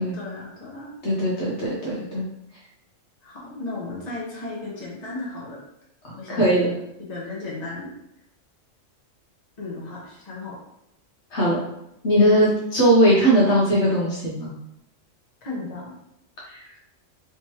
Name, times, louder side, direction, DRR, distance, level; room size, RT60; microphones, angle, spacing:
voice 1, 0.0-0.9 3.2-5.6 6.1-6.8 7.1-7.9 9.6-10.6 15.4-15.9, left 2 dB, 35° left, -4 dB, 1.0 m, -35 dB
voice 2, 1.0-2.2 6.3-6.7 11.3-11.6 12.0-14.5, equal, 60° left, -5 dB, 1.0 m, -19 dB
3.4 x 3.0 x 2.9 m, 0.82 s
omnidirectional pair, 1.4 m